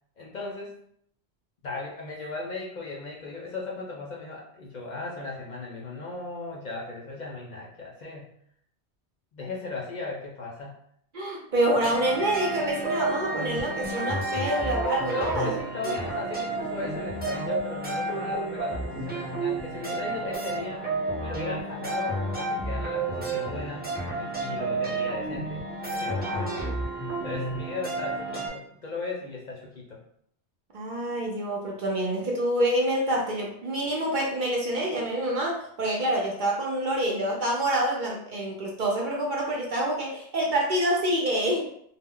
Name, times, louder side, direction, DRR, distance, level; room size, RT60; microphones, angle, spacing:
voice 1, 0.2-0.8 1.6-8.3 9.3-10.7 15.1-20.9 21.2-23.9 24.2-25.6 25.9-26.7 27.2-30.0, left 3 dB, 55° left, -3 dB, 0.6 m, -36 dB
voice 2, 11.1-15.5 26.2-26.6 30.7-41.7, right 1 dB, 55° right, -2 dB, 0.6 m, -27 dB
sound 1, 11.7-28.5, right 2 dB, 15° right, 0.5 m, -31 dB
2.2 x 2.0 x 3.6 m, 0.67 s
omnidirectional pair, 1.1 m